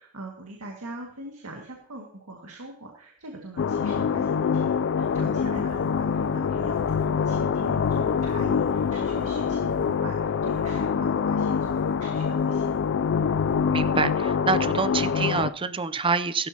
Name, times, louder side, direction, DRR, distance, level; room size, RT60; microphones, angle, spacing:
voice 1, 0.0-12.8, right 2 dB, 85° right, 1 dB, 2.0 m, -42 dB
sound 1, 3.6-15.5, left 6 dB, 55° left, 0.4 m, -25 dB
voice 2, 13.7-16.5, right 4 dB, 25° right, 13 dB, 0.5 m, -26 dB
15.5 x 12.5 x 2.9 m, 0.63 s
head